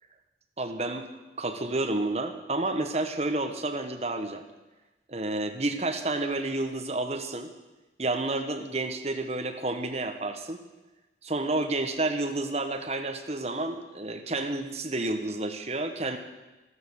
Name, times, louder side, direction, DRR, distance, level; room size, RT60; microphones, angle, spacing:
voice 1, 0.6-4.4 5.1-7.5 8.0-10.6 11.2-16.2, right 2 dB, 35° right, 5 dB, 1.2 m, -30 dB
13.0 x 12.5 x 6.5 m, 1.1 s
head